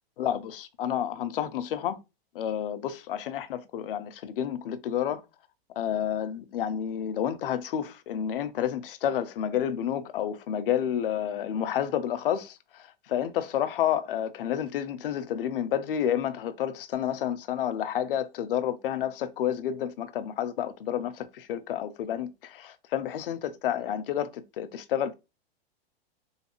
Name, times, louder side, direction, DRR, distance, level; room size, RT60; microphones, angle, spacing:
voice 1, 0.2-2.0 2.3-5.2 5.8-25.1, left 10 dB, 60° left, 0.5 m, -30 dB
3.2 x 2.8 x 2.9 m
supercardioid pair, 175°, 31 cm